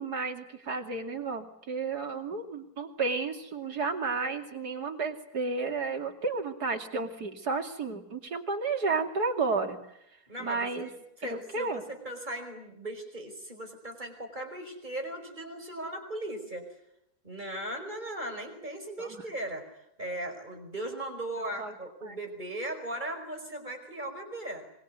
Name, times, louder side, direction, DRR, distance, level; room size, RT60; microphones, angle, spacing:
voice 1, 0.0-9.8 10.4-10.9 11.2-11.8 19.0-19.2 21.4-21.7 22.0-22.2, right 4 dB, 90° right, 4 dB, 3.3 m, -32 dB
voice 2, 10.3-16.7 17.2-24.6, right 1 dB, 30° right, 5 dB, 5.2 m, -38 dB
25.5 x 23.0 x 9.6 m, 0.78 s
omnidirectional pair, 1.7 m